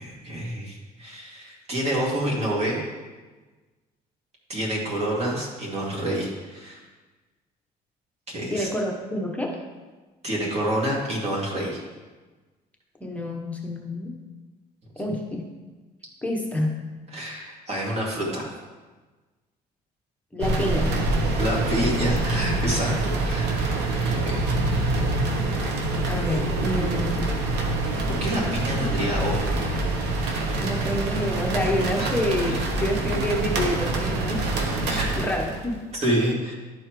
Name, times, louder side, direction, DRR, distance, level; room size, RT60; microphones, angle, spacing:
voice 1, 0.0-2.8 4.5-6.8 8.3-8.7 10.2-11.8 17.1-18.5 21.4-24.4 28.1-30.5 30.8-31.0 32.0-32.1 32.5-32.6 34.9-35.1 35.9-36.5, right 1 dB, 40° right, -4 dB, 2.5 m, -28 dB
voice 2, 8.5-9.6 13.0-14.1 15.0-15.4 16.2-16.8 20.3-20.9 26.1-27.2 28.8-28.9 30.6-34.5 35.2-35.8, left 1 dB, 10° left, 0 dB, 1.0 m, -28 dB
sound 1, 20.4-35.7, right 2 dB, 85° right, 1.1 m, -25 dB
11.5 x 4.5 x 3.2 m, 1.3 s
cardioid pair, 110°, 17 cm